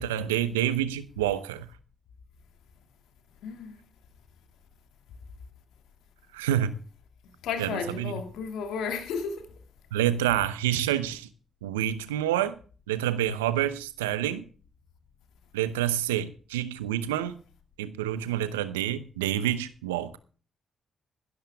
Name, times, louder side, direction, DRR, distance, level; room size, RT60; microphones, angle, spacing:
voice 1, 0.0-1.7 6.3-6.7 7.6-8.2 9.9-11.3 11.6-12.5 12.9-14.5 15.5-17.4 17.8-20.2, right 11 dB, 90° right, 0.8 m, -28 dB
voice 2, 3.4-3.8 7.4-9.5, left 6 dB, 75° left, 2.3 m, -33 dB
15.5 x 12.5 x 3.5 m
hypercardioid pair, 40°, 0 cm